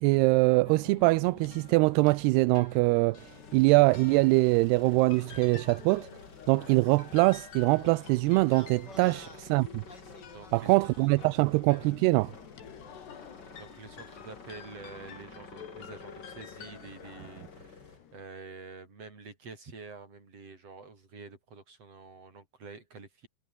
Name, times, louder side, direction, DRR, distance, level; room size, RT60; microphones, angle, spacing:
voice 1, 0.0-6.1 6.5-9.8 10.5-12.3, right 24 dB, 85° right, 2.6 m, -23 dB
sound 1, 0.7-18.2, left 8 dB, 90° left, 5.2 m, -50 dB
sound 2, 3.2-18.0, left 3 dB, 25° left, 5.3 m, -51 dB
voice 2, 10.2-11.4 12.8-13.1 13.6-23.3, right 4 dB, 35° right, 6.7 m, -48 dB
omnidirectional pair, 4.7 m